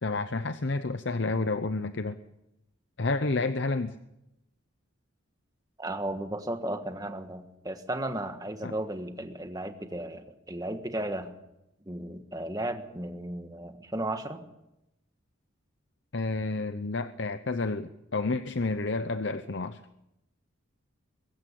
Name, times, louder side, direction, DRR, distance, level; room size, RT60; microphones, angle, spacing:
voice 1, 0.0-2.2 3.0-3.9 8.6-8.7 16.1-19.8, left 3 dB, 60° left, 10 dB, 0.8 m, -30 dB
voice 2, 5.8-11.3 11.8-14.4, right 1 dB, 15° right, 7 dB, 1.6 m, -35 dB
23.0 x 14.0 x 8.6 m, 0.90 s
head